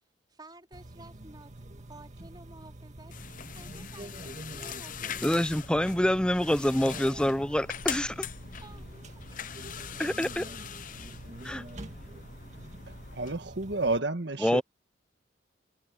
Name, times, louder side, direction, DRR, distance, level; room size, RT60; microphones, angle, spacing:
voice 1, 0.3-1.5 1.9-5.4 8.6-9.4, right 2 dB, 25° right, 4.2 m, -53 dB
sound 1, 0.7-14.0, right 1 dB, 40° right, 2.0 m, -46 dB
sound 2, 3.1-13.3, left 8 dB, 45° left, 0.8 m, -42 dB
voice 2, 5.2-8.3 10.0-10.5 11.4-11.6 14.4-14.6, equal, 5° left, 0.6 m, -26 dB
voice 3, 13.1-14.6, right 2 dB, 65° right, 1.7 m, -30 dB
head